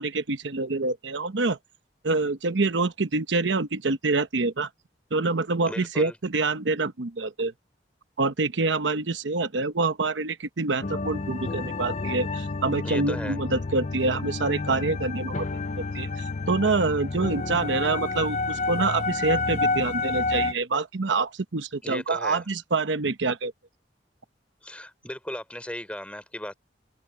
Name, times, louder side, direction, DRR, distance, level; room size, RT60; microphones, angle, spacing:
voice 1, 0.0-1.6 2.0-4.7 5.1-7.5 8.2-15.5 15.9-23.5, right 3 dB, 80° right, 0.9 m, -26 dB
voice 2, 5.7-6.2 12.8-13.4 21.8-22.4 24.6-26.5, left 1 dB, 5° left, 4.0 m, -36 dB
sound 1, 10.8-20.5, left 3 dB, 40° left, 0.6 m, -30 dB
head